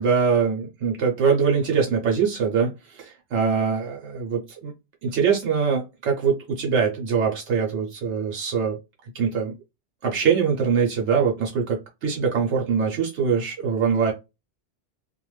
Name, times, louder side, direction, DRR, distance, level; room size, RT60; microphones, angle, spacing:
voice 1, 0.0-4.7 5.0-9.5 10.0-14.1, right 6 dB, 80° right, 1.0 m, -23 dB
2.4 x 2.2 x 3.0 m
omnidirectional pair, 1.2 m